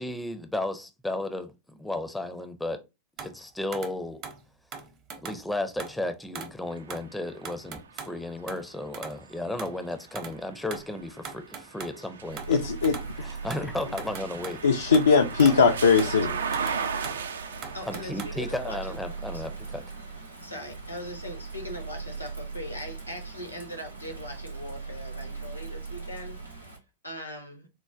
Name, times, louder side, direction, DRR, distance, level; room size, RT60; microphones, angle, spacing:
voice 1, 0.0-1.5 1.8-2.8 3.2-4.2 5.2-12.6 13.2-14.6 17.9-19.8, left 1 dB, 5° left, 0.4 m, -34 dB
sound 1, 3.2-3.4 3.7-4.0 4.2-4.4 4.7-5.5 5.8-6.0 6.4-6.6 6.9-7.1 7.4-8.2 8.5-8.7 8.9-9.2 9.6-9.8 10.2-10.4 10.7-12.0 12.4-13.2 13.5-15.1 15.4-15.7 16.0-16.2 16.5-17.2 17.6-18.3, right 6 dB, 35° right, 0.7 m, -40 dB
sound 2, 6.7-22.6 23.2-24.4, right 6 dB, 70° right, 0.3 m, -39 dB
Bird vocalization bird call bird song / Rain, 12.1-26.8, right 4 dB, 85° right, 0.7 m, -40 dB
voice 2, 12.5-13.0 14.6-16.3, left 5 dB, 70° left, 0.3 m, -20 dB
voice 3, 15.8-16.4 17.7-19.0 19.3-19.5 20.4-26.4 26.7-26.8 27.0-27.7, left 1 dB, 90° left, 0.8 m, -40 dB
4.3 x 2.1 x 2.4 m
figure-of-eight pair, 90°, 0 cm